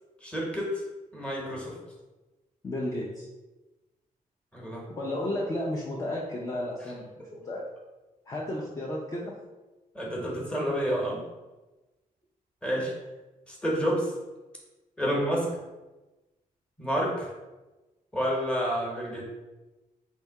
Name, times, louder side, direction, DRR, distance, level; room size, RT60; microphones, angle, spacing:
voice 1, 0.2-0.8 1.1-1.7 4.5-4.8 9.9-11.2 12.6-12.9 13.5-14.1 15.0-15.5 16.8-17.3 18.1-19.2, equal, 5° left, -3 dB, 1.0 m, -29 dB
voice 2, 2.6-3.3 4.9-7.6 8.3-9.3 15.0-15.2, left 1 dB, 25° left, -3 dB, 0.5 m, -33 dB
3.3 x 2.8 x 4.6 m, 1.1 s
wide cardioid pair, 170°, 15 cm